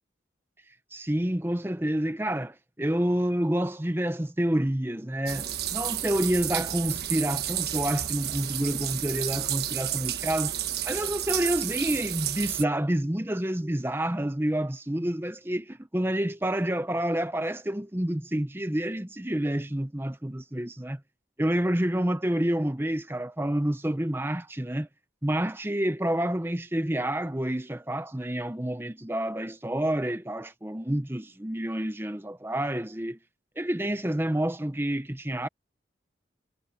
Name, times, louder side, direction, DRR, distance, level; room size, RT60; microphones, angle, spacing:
voice 1, 0.9-10.5 10.8-21.0 21.4-24.9 25.2-33.2 33.6-35.5, right 1 dB, 10° right, 0.8 m, -28 dB
sound 1, 5.3-12.6, right 11 dB, 60° right, 1.5 m, -31 dB
head